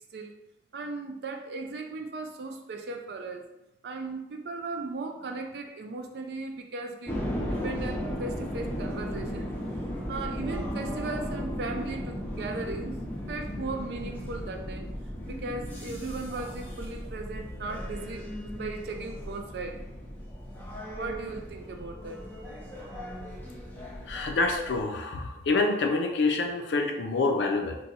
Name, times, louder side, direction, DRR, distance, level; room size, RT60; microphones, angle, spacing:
voice 1, 0.7-3.4 3.8-7.2 7.6-9.5 10.1-13.0 13.3-14.9 15.2-18.2 18.5-19.8 21.0-22.2, right 3 dB, 65° right, 5 dB, 0.4 m, -37 dB
sound 1, 7.1-24.8, equal, 10° left, 0.4 m, -36 dB
voice 2, 24.1-27.8, left 3 dB, 80° left, 3 dB, 0.5 m, -27 dB
2.6 x 2.2 x 4.1 m, 0.97 s
head